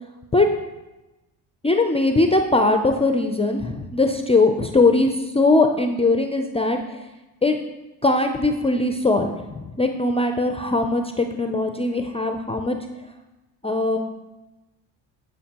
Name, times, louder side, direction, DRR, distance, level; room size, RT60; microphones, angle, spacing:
voice 1, 1.6-5.1 5.3-6.8 7.4-7.6 8.0-9.3 9.6-12.8 13.6-14.0, left 2 dB, 15° left, 5 dB, 0.3 m, -20 dB
12.0 x 5.2 x 2.9 m, 1.1 s
supercardioid pair, 85°, 49 cm